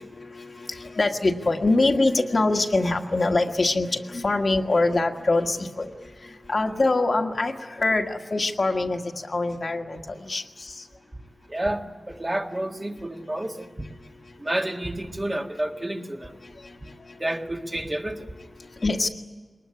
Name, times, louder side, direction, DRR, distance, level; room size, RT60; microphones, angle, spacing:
voice 1, 0.0-10.9 16.4-17.2 18.8-19.1, left 2 dB, 55° left, 3 dB, 1.7 m, -24 dB
voice 2, 11.5-13.7 14.4-16.3 17.2-18.2, right 1 dB, 25° right, 2 dB, 1.8 m, -29 dB
22.5 x 20.0 x 9.8 m, 1.4 s
wide cardioid pair, 90°, 0 cm